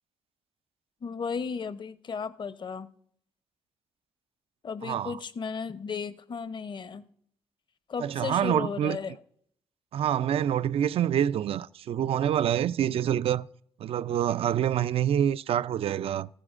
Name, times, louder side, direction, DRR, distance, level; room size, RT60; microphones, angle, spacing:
voice 1, 1.0-2.9 4.6-7.0 7.9-9.2, left 5 dB, 45° left, 0.8 m, -35 dB
voice 2, 4.8-5.2 8.0-9.2 9.9-13.5 13.8-16.3, right 10 dB, 60° right, 0.4 m, -26 dB
14.5 x 9.9 x 2.5 m
supercardioid pair, 55°, 11 cm